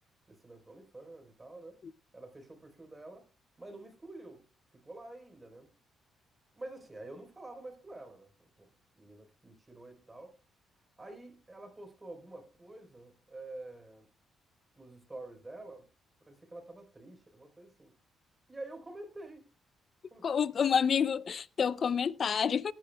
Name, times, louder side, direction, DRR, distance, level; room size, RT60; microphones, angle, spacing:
voice 1, 0.3-1.8 2.1-3.3 3.6-4.4 4.7-5.7 6.5-8.3 8.6-8.7 9.0-10.3 11.0-14.1 14.8-15.9 16.3-17.9 18.5-19.4 20.1-20.3 20.7-21.1, right 2 dB, 20° right, 4.2 m, -48 dB
voice 2, 20.2-22.7, left 7 dB, 50° left, 0.5 m, -28 dB
18.0 x 10.0 x 2.3 m
cardioid pair, 90°, 0 cm